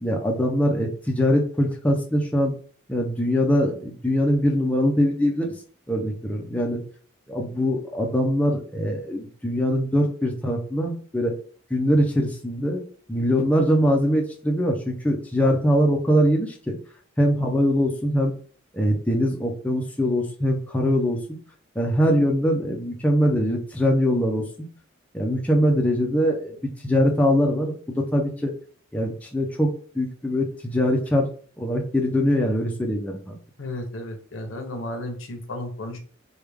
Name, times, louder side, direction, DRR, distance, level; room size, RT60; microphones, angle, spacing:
voice 1, 0.0-2.5 2.9-5.5 5.9-6.8 7.3-11.3 11.7-12.8 13.1-16.7 17.2-18.3 18.7-21.4 21.8-24.7 25.1-26.6 26.8-28.5 28.9-31.3 31.6-33.4, equal, 5° left, -1 dB, 0.5 m, -22 dB
voice 2, 33.6-36.0, left 1 dB, 85° left, 5 dB, 0.8 m, -33 dB
3.3 x 2.3 x 3.4 m, 0.43 s
head